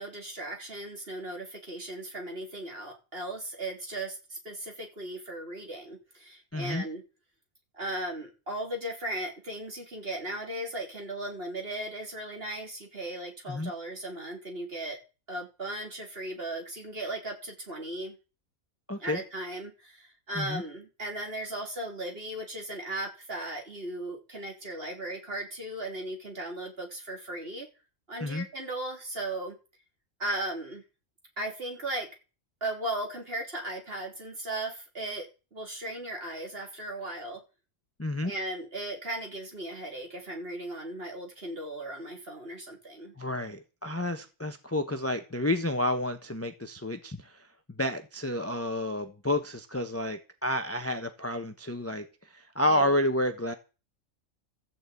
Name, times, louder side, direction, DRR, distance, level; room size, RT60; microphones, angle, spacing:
voice 1, 0.0-7.0 7.7-15.0 15.3-18.2 19.0-27.7 28.1-29.6 30.2-30.8 31.4-32.1 32.6-37.4 38.2-43.1 52.7-52.9, right 1 dB, 40° right, 1 dB, 3.6 m, -37 dB
voice 2, 6.5-6.8 13.5-13.7 18.9-19.2 20.3-20.6 28.2-28.5 38.0-38.3 43.2-53.5, left 1 dB, 10° left, 7 dB, 0.9 m, -30 dB
14.0 x 7.3 x 8.4 m, 0.33 s
omnidirectional pair, 1.5 m